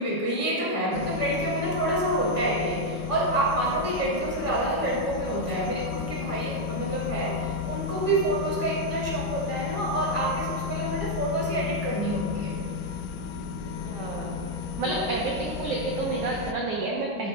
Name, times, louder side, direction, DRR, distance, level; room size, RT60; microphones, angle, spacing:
voice 1, 0.0-12.5 14.8-15.0 17.1-17.3, right 1 dB, 40° left, -6 dB, 0.5 m, -28 dB
sound 1, 0.9-16.5, left 9 dB, 80° left, 2.1 m, -34 dB
voice 2, 13.8-17.3, right 3 dB, 90° right, -2 dB, 1.3 m, -30 dB
14.0 x 9.2 x 2.2 m, 2.2 s
omnidirectional pair, 4.0 m